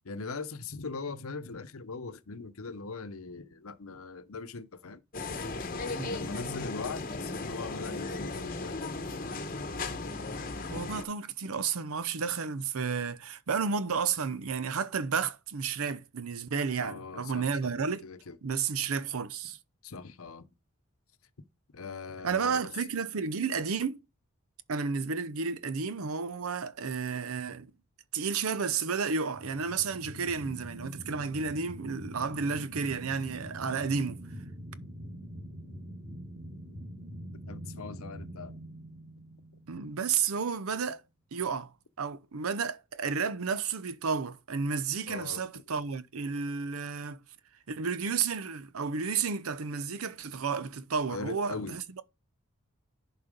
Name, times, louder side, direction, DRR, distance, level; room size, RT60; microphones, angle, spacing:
voice 1, 0.0-5.0 6.1-8.8 16.8-17.7 18.0-18.4 19.8-20.5 21.7-22.6 37.5-38.6 45.1-45.4 51.1-51.8, left 4 dB, 80° left, 0.8 m, -40 dB
sound 1, 5.1-11.0, left 3 dB, 40° left, 0.9 m, -36 dB
voice 2, 10.7-18.1 18.4-19.6 22.2-24.0 24.7-27.7 28.1-34.2 39.7-41.0 41.3-41.7 42.0-47.2 47.7-52.0, right 5 dB, 80° right, 0.7 m, -32 dB
sound 2, 29.3-40.3, equal, 30° right, 5.8 m, -44 dB
11.0 x 4.1 x 5.2 m
head